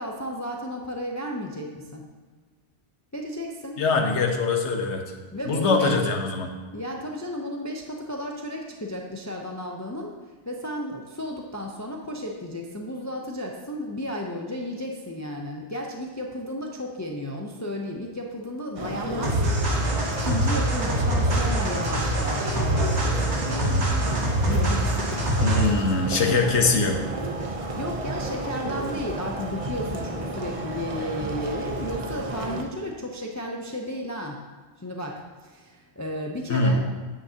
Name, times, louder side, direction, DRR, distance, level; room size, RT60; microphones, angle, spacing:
voice 1, 0.0-2.1 3.1-3.8 5.3-5.9 6.7-10.2 10.5-19.9 20.2-25.7 27.8-34.4 34.8-36.8, left 1 dB, 20° left, 0 dB, 0.6 m, -33 dB
voice 2, 3.8-5.0 5.5-6.5 25.4-27.0 36.5-36.8, left 3 dB, 75° left, 3 dB, 1.3 m, -22 dB
sound 1, 18.8-32.7, right 2 dB, 35° right, 0.8 m, -32 dB
sound 2, 19.2-25.8, right 1 dB, 75° right, 1.8 m, -24 dB
9.5 x 8.3 x 2.9 m, 1.4 s
omnidirectional pair, 1.2 m